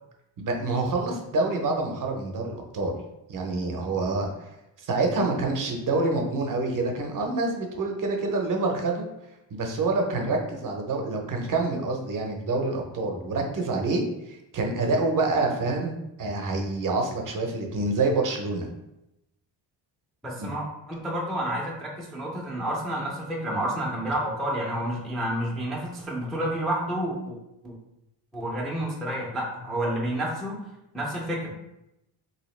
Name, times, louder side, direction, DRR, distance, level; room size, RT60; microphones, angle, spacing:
voice 1, 0.4-2.9 3.3-4.3 4.8-9.1 9.5-14.0 14.3-15.9 16.2-18.7 20.4-20.5, right 3 dB, 45° right, 2 dB, 0.6 m, -27 dB
voice 2, 20.2-27.4 27.6-27.7 28.3-30.7 30.9-31.5, right 1 dB, ahead, -4 dB, 0.3 m, -30 dB
3.4 x 2.7 x 3.1 m, 0.89 s
cardioid pair, 160°, 45 cm